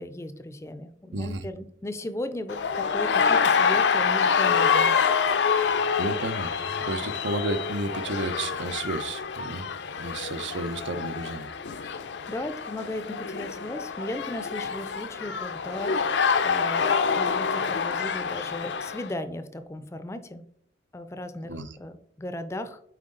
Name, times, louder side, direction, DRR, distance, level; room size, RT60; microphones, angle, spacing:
voice 1, 0.0-5.0 11.8-16.0 16.4-20.4 20.9-22.8, left 1 dB, 15° left, 10 dB, 0.4 m, -36 dB
voice 2, 1.1-1.4 6.0-9.7 10.0-11.5 21.5-21.8, right 2 dB, 85° right, 10 dB, 0.7 m, -32 dB
sound 1, 2.5-19.1, left 6 dB, 75° left, 0.5 m, -26 dB
7.7 x 4.7 x 3.8 m, 0.69 s
head